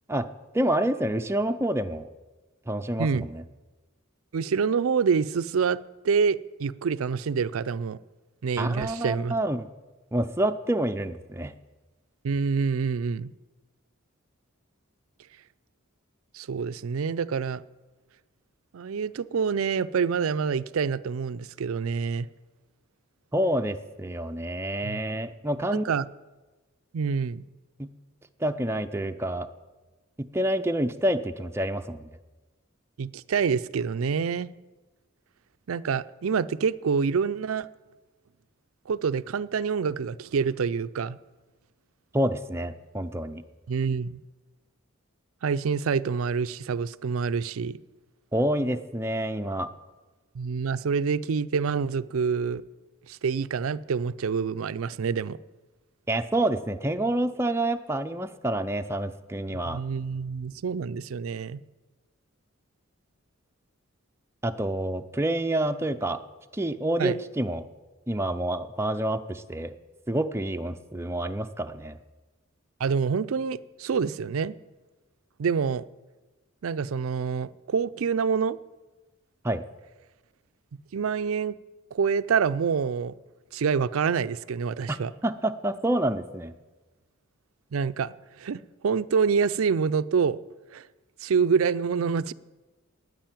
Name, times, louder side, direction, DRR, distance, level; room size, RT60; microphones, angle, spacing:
voice 1, 0.5-2.1 2.7-3.4 8.6-9.7 10.1-11.5 23.3-25.8 27.8-27.9 28.4-29.5 30.2-32.1 42.1-43.4 48.3-49.7 56.1-59.8 64.4-66.2 66.5-67.6 68.1-69.7 70.1-72.0 79.4-79.6 84.9-85.0 85.2-86.5, right 1 dB, 10° right, 0.5 m, -28 dB
voice 2, 4.3-5.8 6.0-8.0 8.4-9.4 12.2-13.3 16.3-17.6 18.7-22.3 24.8-25.0 25.8-26.0 26.9-27.4 33.0-34.5 35.7-37.7 38.9-41.2 43.7-44.2 45.4-47.7 50.3-52.6 53.1-55.4 59.6-61.6 67.0-67.2 72.8-74.5 75.4-75.8 76.6-78.6 80.9-81.6 81.9-83.1 83.5-85.1 87.7-88.1 88.4-90.4 90.7-90.9 91.2-92.3, right 6 dB, 80° right, 0.4 m, -26 dB
10.0 x 9.6 x 9.1 m
head